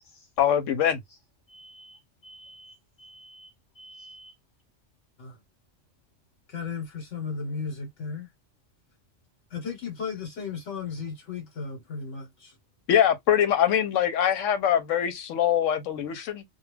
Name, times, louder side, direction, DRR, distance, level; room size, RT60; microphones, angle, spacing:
voice 1, 0.4-1.0 12.9-16.4, left 9 dB, 90° left, 1.0 m, -23 dB
voice 2, 1.5-2.0 2.2-2.7 3.0-3.5 3.8-4.3, right 1 dB, 50° left, 0.6 m, -49 dB
voice 3, 6.5-8.3 9.5-12.6, left 5 dB, 75° left, 1.3 m, -35 dB
2.3 x 2.2 x 3.1 m
omnidirectional pair, 1.3 m